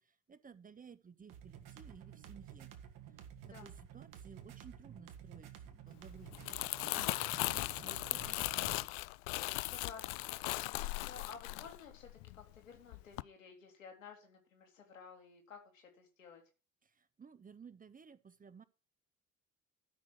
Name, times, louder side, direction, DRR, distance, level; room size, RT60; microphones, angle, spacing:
voice 1, 0.0-2.7 3.1-8.8 16.8-18.6, right 6 dB, 20° right, 14 dB, 0.9 m, -57 dB
sound 1, 1.3-8.9, right 9 dB, 55° right, 1.8 m, -52 dB
Crumpling crinkling, 6.2-12.6 12.9-13.2, left 22 dB, 55° left, 0.5 m, -38 dB
voice 2, 9.7-16.4, left 5 dB, 80° left, 2 dB, 2.8 m, -54 dB
12.5 x 6.2 x 5.7 m, 0.33 s
figure-of-eight pair, 50°, 39 cm